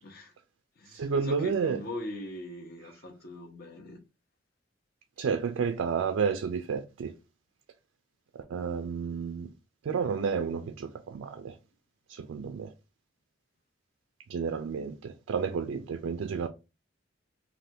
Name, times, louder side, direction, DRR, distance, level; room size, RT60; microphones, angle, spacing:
voice 1, 0.0-0.3 0.8-4.0, left 1 dB, 50° left, 0.7 m, -41 dB
voice 2, 0.9-1.8 5.2-7.1 8.3-9.5 9.8-11.6 12.1-12.7 14.3-16.5, right 6 dB, 90° right, 0.3 m, -31 dB
3.4 x 2.2 x 2.7 m
head